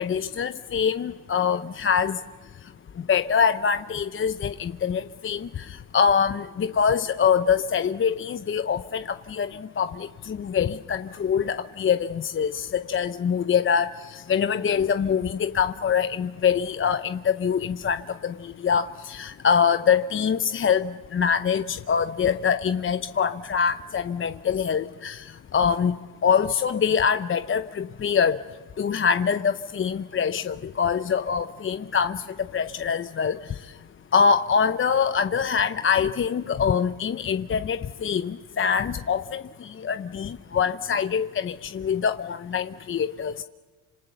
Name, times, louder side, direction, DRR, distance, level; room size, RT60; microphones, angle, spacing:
voice 1, 0.0-2.2 3.1-25.9 26.2-28.4 28.8-32.2 32.5-33.4 34.1-43.4, left 7 dB, 30° left, 11 dB, 0.7 m, -24 dB
28.5 x 26.5 x 7.0 m, 1.4 s
cardioid pair, 105°, 40 cm